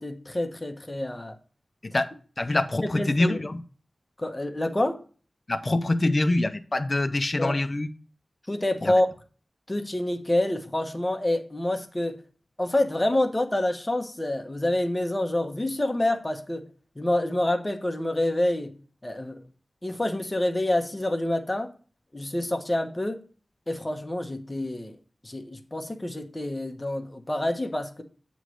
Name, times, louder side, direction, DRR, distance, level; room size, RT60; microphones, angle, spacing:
voice 1, 0.0-1.4 2.8-3.4 4.2-5.0 7.4-7.6 8.5-9.1 9.7-12.2 12.6-16.7 17.0-18.7 19.0-19.4 19.8-21.7 22.1-23.2 23.7-25.0 25.2-28.0, left 1 dB, 25° left, 0.9 m, -27 dB
voice 2, 2.4-3.6 5.5-7.9 8.8-8.9, left 2 dB, 40° left, 0.6 m, -25 dB
8.2 x 3.1 x 6.2 m
wide cardioid pair, 85°, 0 cm